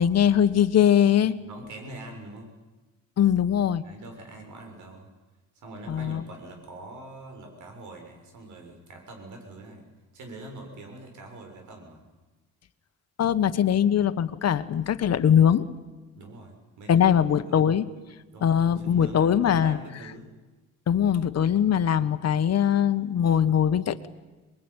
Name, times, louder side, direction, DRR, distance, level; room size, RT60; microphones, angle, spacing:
voice 1, 0.0-1.4 3.2-3.8 5.9-6.2 13.2-15.6 16.9-17.8 18.4-19.8 20.9-24.1, left 9 dB, 55° left, 11 dB, 1.5 m, -21 dB
voice 2, 1.4-2.5 3.8-5.1 5.6-9.8 10.1-12.0 16.2-17.1 17.4-17.6 18.3-20.3, right 2 dB, 75° right, 4 dB, 6.9 m, -44 dB
23.5 x 22.5 x 9.9 m, 1.2 s
cardioid pair, 90°, 30 cm